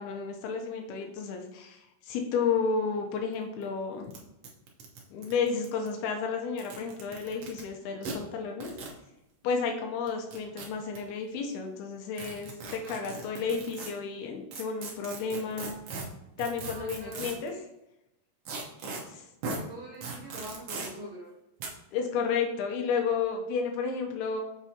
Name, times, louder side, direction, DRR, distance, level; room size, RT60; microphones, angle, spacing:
voice 1, 0.0-4.1 5.1-8.7 9.4-15.7 16.4-17.5 19.1-19.3 21.9-24.4, left 5 dB, 85° left, 3 dB, 2.8 m, -32 dB
sound 1, 3.3-3.4 3.6-3.7 4.1-4.2 4.4-5.9 6.5-7.6 8.0-8.1 8.6-9.0 10.1-11.0 12.2-13.9 14.5-17.5 18.5-19.0 19.4-19.6 20.0-20.9 21.6-21.7, right 4 dB, 90° right, 1.3 m, -39 dB
voice 2, 12.8-13.3 16.6-17.6 19.4-21.3, right 1 dB, 65° right, -3 dB, 1.7 m, -45 dB
6.3 x 6.2 x 2.8 m, 0.90 s
omnidirectional pair, 4.4 m